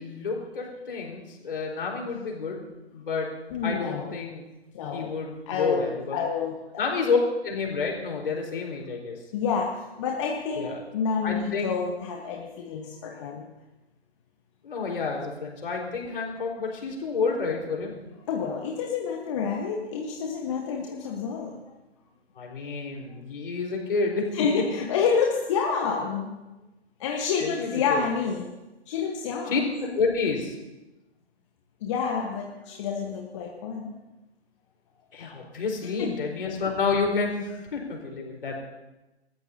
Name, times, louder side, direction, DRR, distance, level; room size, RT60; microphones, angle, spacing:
voice 1, 0.0-2.6 2.9-3.3 3.6-4.4 4.9-6.2 6.8-9.1 10.6-10.8 11.2-11.8 14.6-18.0 22.4-24.3 27.4-28.0 29.5-29.6 29.9-30.5 35.1-38.6, left 4 dB, 55° left, -1 dB, 4.3 m, -29 dB
voice 2, 3.5-4.1 4.7-5.1 5.5-6.8 9.3-9.7 10.0-10.7 10.9-13.5 18.3-21.6 24.3-26.3 27.0-28.5 28.9-29.6 31.8-33.9 36.0-36.1, left 6 dB, 30° left, 0 dB, 1.2 m, -28 dB
27.5 x 14.0 x 2.8 m, 1.0 s
figure-of-eight pair, 145°, 33 cm